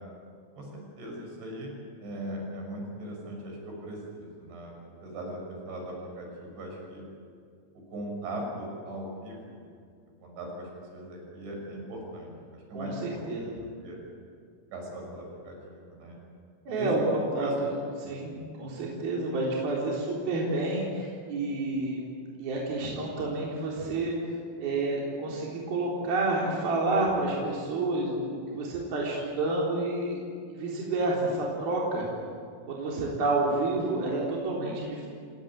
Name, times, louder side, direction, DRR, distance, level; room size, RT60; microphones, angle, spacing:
voice 1, 0.6-1.7 2.0-4.7 5.0-7.1 7.7-9.6 10.2-13.4 13.8-14.0 14.7-16.2 16.7-17.5 18.0-18.2, right 1 dB, 75° right, 0 dB, 8.6 m, -39 dB
voice 2, 12.7-13.5 16.7-17.7 18.0-22.0 22.4-24.2 24.6-30.2 30.5-32.1 32.7-35.1, right 2 dB, 55° right, -4 dB, 5.6 m, -29 dB
28.5 x 18.5 x 9.2 m, 2.2 s
omnidirectional pair, 5.3 m